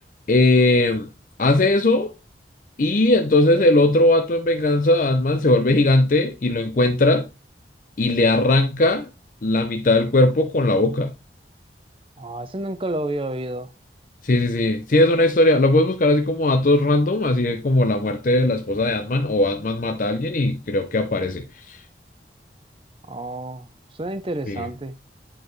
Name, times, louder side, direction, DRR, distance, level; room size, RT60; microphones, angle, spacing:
voice 1, 0.3-1.1 1.4-2.1 2.8-7.3 8.0-9.1 9.4-11.1 14.2-21.8 24.5-24.7, left 2 dB, 50° left, 0.6 m, -19 dB
voice 2, 12.2-13.7 23.1-23.7 24.0-24.9, right 1 dB, 30° right, 0.7 m, -29 dB
8.9 x 4.4 x 3.2 m
head